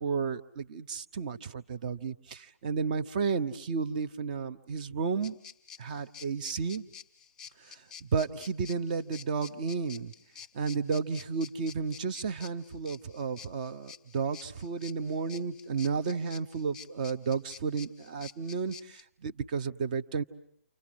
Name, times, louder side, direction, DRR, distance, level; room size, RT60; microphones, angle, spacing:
voice 1, 0.0-5.4 5.8-6.9 7.7-7.8 8.1-10.1 10.5-20.2, right 5 dB, 30° right, 10 dB, 1.0 m, -32 dB
sound 1, 5.2-19.0, left 7 dB, 10° left, 1.4 m, -49 dB
29.5 x 27.0 x 6.2 m, 0.68 s
figure-of-eight pair, 140°, 8 cm